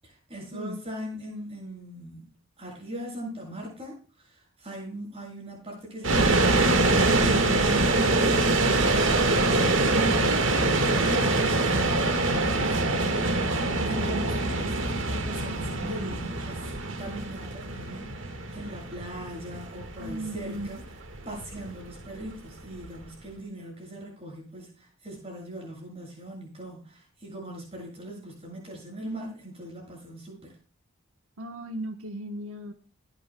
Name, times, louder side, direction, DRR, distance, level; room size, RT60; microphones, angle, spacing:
voice 1, 0.0-2.3 2.6-4.3 4.6-7.0 7.3-16.6 17.0-20.8 21.3-30.5, equal, 30° right, -1 dB, 7.5 m, -39 dB
sound 1, 6.0-23.0, right 2 dB, 60° right, 1.7 m, -24 dB
voice 2, 20.0-20.7 31.4-32.7, right 1 dB, 85° right, 5 dB, 1.2 m, -36 dB
20.5 x 9.6 x 2.2 m, 0.41 s
head